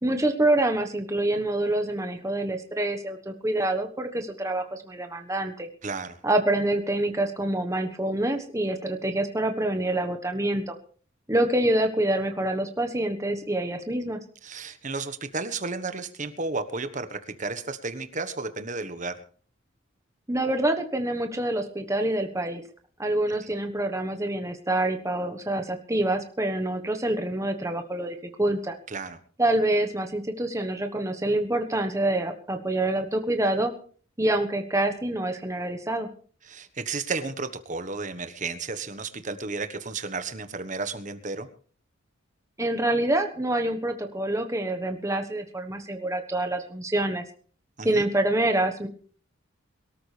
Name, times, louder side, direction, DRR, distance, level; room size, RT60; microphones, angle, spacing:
voice 1, 0.0-5.7 6.2-10.7 11.3-14.2 20.3-22.6 23.0-28.8 29.4-33.7 34.2-36.1 42.6-47.2 47.8-48.9, right 1 dB, 15° right, 5 dB, 1.3 m, -26 dB
voice 2, 5.8-6.2 14.4-19.1 28.9-29.2 36.5-41.5 47.8-48.1, right 3 dB, 40° right, 10 dB, 1.3 m, -33 dB
22.5 x 13.5 x 3.4 m, 0.43 s
head